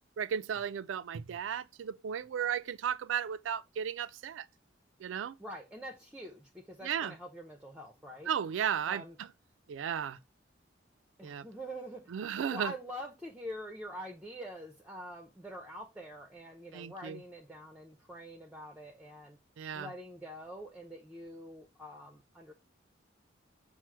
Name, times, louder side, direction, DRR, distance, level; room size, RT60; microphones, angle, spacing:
voice 1, 0.2-4.5 5.0-5.4 6.8-7.1 8.3-9.3 9.7-10.2 11.2-11.5 12.1-12.7 16.7-17.2 19.6-19.9, right 8 dB, 85° right, 0.3 m, -35 dB
voice 2, 5.4-8.3 8.9-9.1 11.2-12.1 12.5-19.4 19.7-22.5, equal, 5° right, 0.5 m, -45 dB
6.0 x 2.0 x 4.3 m
head